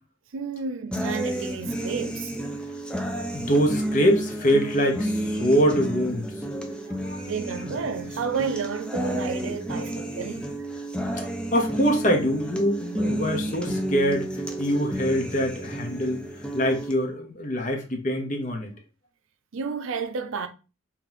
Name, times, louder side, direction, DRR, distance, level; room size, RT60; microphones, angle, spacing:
voice 1, 0.3-2.4 7.3-10.7 19.5-20.5, right 5 dB, 85° right, 0.5 m, -31 dB
sound 1, 0.9-16.9, right 1 dB, 5° left, 0.4 m, -31 dB
voice 2, 3.3-6.5 6.8-7.3 11.5-16.3 16.5-18.7, equal, 40° left, 0.9 m, -24 dB
3.0 x 2.9 x 3.9 m
head